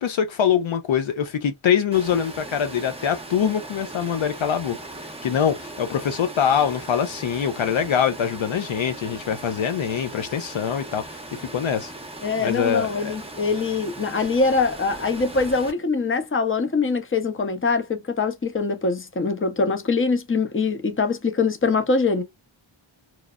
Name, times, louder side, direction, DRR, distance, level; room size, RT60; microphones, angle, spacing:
voice 1, 0.0-4.8 5.0-11.9 12.4-13.2, left 8 dB, 70° left, 0.6 m, -24 dB
Water, 1.9-15.7, right 2 dB, 10° right, 0.7 m, -38 dB
voice 2, 12.2-22.2, left 4 dB, 25° left, 0.7 m, -23 dB
3.0 x 2.0 x 2.3 m
cardioid pair, 50°, 49 cm